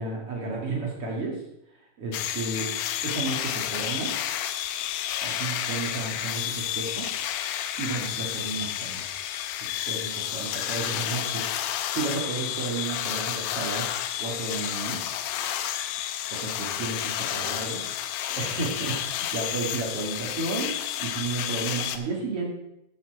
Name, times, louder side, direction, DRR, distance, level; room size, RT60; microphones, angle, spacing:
voice 1, 0.0-1.4 2.0-2.7 3.0-4.1 5.2-7.1 7.8-9.1 9.6-13.9 14.2-15.0 16.3-17.8 18.3-22.5, right 3 dB, 45° right, -2 dB, 2.2 m, -32 dB
sound 1, 2.1-22.0, left 11 dB, 85° left, 2.8 m, -31 dB
15.0 x 5.7 x 4.7 m, 0.82 s
omnidirectional pair, 4.7 m